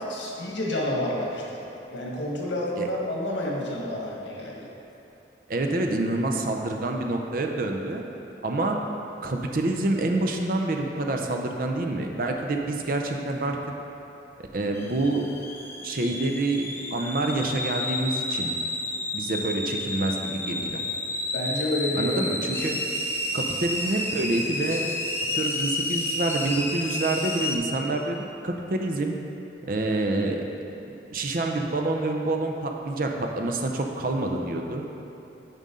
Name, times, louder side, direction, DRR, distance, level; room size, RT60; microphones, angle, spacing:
voice 1, 0.0-1.6 1.9-4.7 21.3-22.2, left 1 dB, 85° left, -3 dB, 1.5 m, -29 dB
voice 2, 5.5-8.0 8.4-8.8 9.2-13.6 14.4-15.3 15.8-18.6 19.1-20.8 22.0-22.8 23.3-24.9 25.3-28.2 28.4-29.1 29.7-30.5 30.8-34.9, right 2 dB, 50° right, 2 dB, 0.6 m, -27 dB
sound 1, 14.7-27.6, left 2 dB, 15° left, 0.5 m, -31 dB
9.1 x 5.4 x 3.7 m, 2.9 s
head